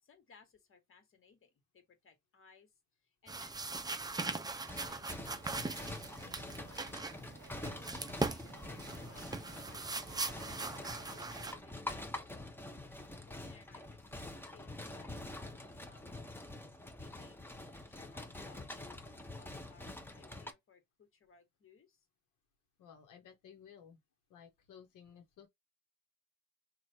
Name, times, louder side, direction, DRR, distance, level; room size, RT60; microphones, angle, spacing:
voice 1, 0.0-2.7 3.0-5.1 5.6-10.5 10.8-12.4 13.3-16.4 16.9-17.4 17.6-22.1, left 5 dB, 45° left, 1.5 m, -63 dB
sound 1, 3.3-11.5, right 3 dB, 15° right, 0.4 m, -40 dB
sound 2, 4.1-11.6, right 7 dB, 40° right, 0.9 m, -59 dB
sound 3, 4.6-20.5, left 2 dB, 5° left, 0.8 m, -46 dB
voice 2, 22.8-24.0 24.3-25.5, left 8 dB, 85° left, 1.1 m, -56 dB
3.2 x 2.5 x 4.2 m
cardioid pair, 90°, 30 cm